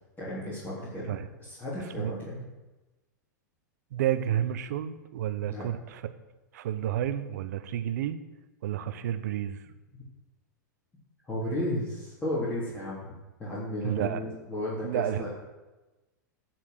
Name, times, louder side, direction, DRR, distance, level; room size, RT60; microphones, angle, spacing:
voice 1, 0.2-2.4 5.5-5.6 11.3-13.0 13.4-15.3, left 1 dB, 15° left, -8 dB, 3.3 m, -34 dB
voice 2, 3.9-6.0 6.5-8.2 8.6-9.6 13.8-14.2 14.8-15.3, right 11 dB, 65° right, 11 dB, 0.8 m, -30 dB
11.5 x 4.6 x 7.8 m, 1.1 s
hypercardioid pair, 100°, 10 cm